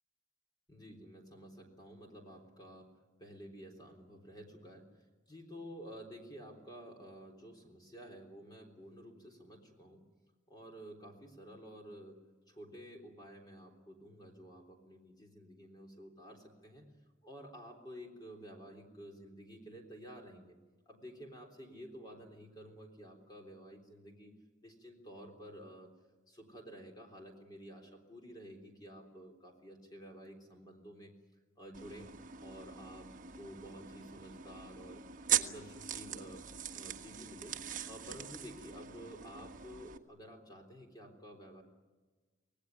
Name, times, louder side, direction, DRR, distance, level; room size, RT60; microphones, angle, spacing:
voice 1, 0.7-2.9 3.2-10.0 10.5-12.2 12.5-16.9 17.2-20.6 20.9-25.9 26.3-31.1 31.6-33.1 33.3-35.0 35.3-36.4 36.7-37.6 37.9-41.6, equal, 20° left, 2 dB, 3.6 m, -51 dB
sound 1, 31.7-40.0, right 10 dB, 40° right, 1.4 m, -40 dB
26.0 x 18.5 x 9.6 m, 1.3 s
head